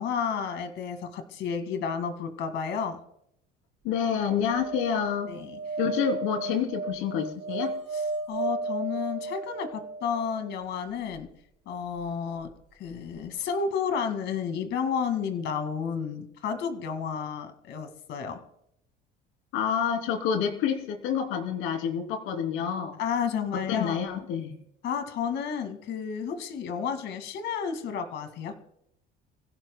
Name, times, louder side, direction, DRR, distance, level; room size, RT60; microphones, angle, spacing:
voice 1, 0.0-3.0 5.3-5.6 7.9-11.3 11.7-12.5 12.8-18.4 23.0-24.0 24.8-28.6, left 6 dB, 60° left, 7 dB, 2.2 m, -31 dB
voice 2, 3.8-5.3 5.8-7.7 19.5-23.0 23.5-24.6, left 7 dB, 80° left, 4 dB, 3.3 m, -28 dB
sound 1, 4.4-10.6 12.9-13.0 13.2-13.3, right 3 dB, 75° right, 3.1 m, -34 dB
29.5 x 16.5 x 2.3 m, 0.77 s
cardioid pair, 130°, 21 cm